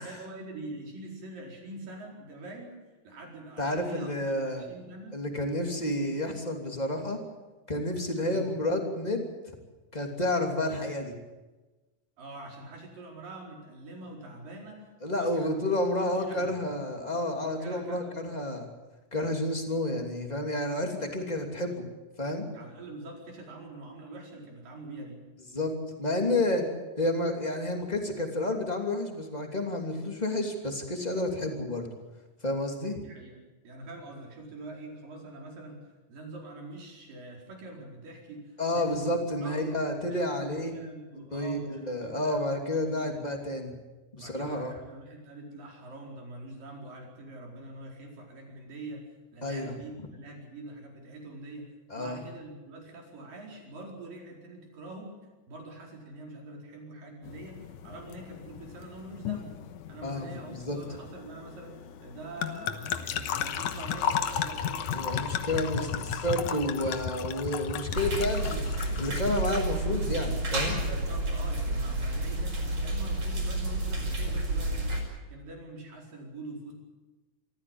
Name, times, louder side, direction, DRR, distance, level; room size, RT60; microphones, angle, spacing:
voice 1, 0.0-2.7 3.0-5.2 8.2-8.5 12.2-14.9 15.2-16.6 17.6-18.2 22.5-25.2 33.0-33.4 33.6-35.8 36.1-39.1 39.4-39.8 40.1-43.2 44.2-49.0 49.3-55.1 55.5-59.6 59.9-61.8 62.0-65.9 66.7-67.0 70.9-74.9 75.3-76.7, right 2 dB, 80° right, 0 dB, 6.3 m, -44 dB
voice 2, 3.6-4.6 5.1-7.2 7.7-9.3 9.9-11.1 15.0-18.7 19.1-21.8 22.2-22.5 25.5-25.7 26.0-26.6 27.0-31.9 32.4-33.0 38.6-40.7 41.2-43.8 44.1-44.7 49.4-49.7 51.9-52.2 60.0-60.8 64.9-68.6 69.0-70.8, left 1 dB, 15° left, 2 dB, 2.6 m, -30 dB
sound 1, 57.2-69.6, left 8 dB, 70° left, 2.5 m, -35 dB
sound 2, 68.0-75.0, right 1 dB, 50° right, 6.1 m, -30 dB
25.5 x 14.5 x 8.8 m, 1.2 s
omnidirectional pair, 3.9 m